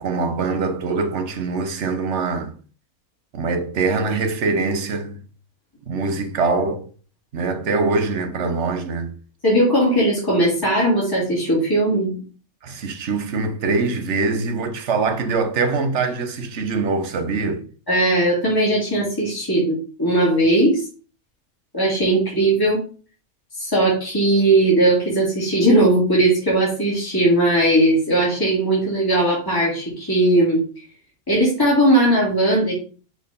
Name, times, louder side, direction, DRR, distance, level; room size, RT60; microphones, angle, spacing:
voice 1, 0.0-2.5 3.3-5.2 5.9-6.9 7.3-9.1 12.6-17.6, right 4 dB, 55° right, 1.2 m, -23 dB
voice 2, 9.4-12.2 17.9-20.9 21.7-22.8 23.6-30.6 31.3-32.7, right 1 dB, 15° left, 3.0 m, -18 dB
6.4 x 4.6 x 5.3 m
omnidirectional pair, 1.5 m